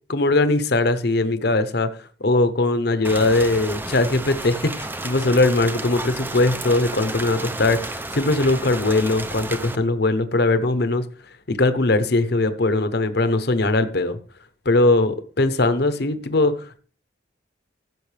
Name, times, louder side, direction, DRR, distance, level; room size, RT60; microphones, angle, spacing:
voice 1, 0.1-11.1 11.5-14.2 14.6-16.8, left 2 dB, 55° left, 0.8 m, -20 dB
Rain, 3.0-9.8, right 2 dB, 10° right, 0.5 m, -32 dB
15.5 x 6.3 x 3.3 m
head